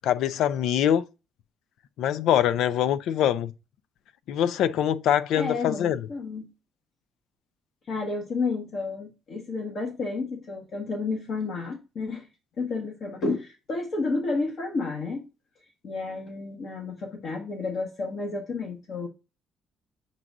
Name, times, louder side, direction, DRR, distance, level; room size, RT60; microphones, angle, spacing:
voice 1, 0.0-1.0 2.0-3.5 4.3-6.1, left 10 dB, 75° left, 0.5 m, -24 dB
voice 2, 5.4-6.5 7.9-12.3 12.6-15.2 15.8-19.1, left 3 dB, 55° left, 1.4 m, -31 dB
7.4 x 2.7 x 4.7 m
cardioid pair, 115°, 0 cm